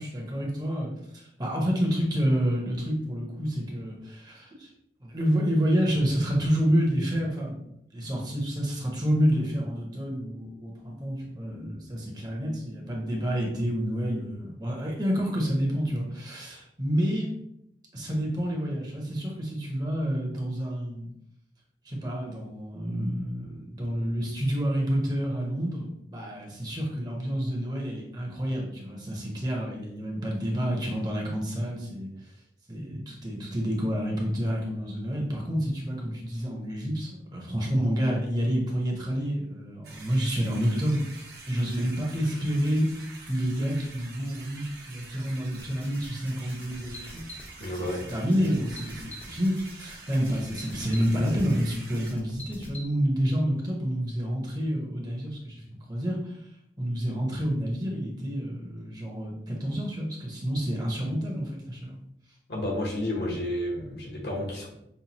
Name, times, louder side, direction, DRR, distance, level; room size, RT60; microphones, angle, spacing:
voice 1, 0.0-4.7 5.0-7.7 7.9-17.3 17.9-21.1 21.8-32.1 32.7-41.0 41.5-42.9 43.3-47.3 47.6-56.4 56.8-61.9, equal, 25° right, -2 dB, 0.8 m, -29 dB
sound 1, 39.8-52.1, right 3 dB, 65° right, 1.1 m, -46 dB
sound 2, 45.6-52.9, equal, 10° left, 0.5 m, -46 dB
voice 2, 47.6-48.1 62.5-64.7, left 1 dB, 70° left, -1 dB, 1.1 m, -31 dB
5.5 x 2.3 x 2.9 m, 0.77 s
head